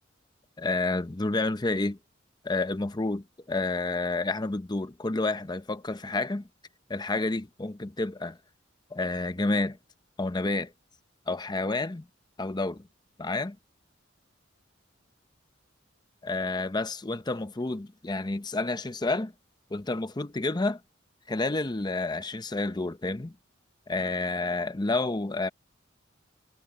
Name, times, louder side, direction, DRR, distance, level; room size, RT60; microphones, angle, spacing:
voice 1, 0.6-2.0 2.4-6.5 6.9-8.4 8.9-9.8 10.2-10.7 11.3-12.1 12.4-12.8 13.2-13.6 16.2-19.3 19.7-20.8 21.3-23.3 23.9-25.5, left 2 dB, 20° left, 0.6 m, -29 dB
head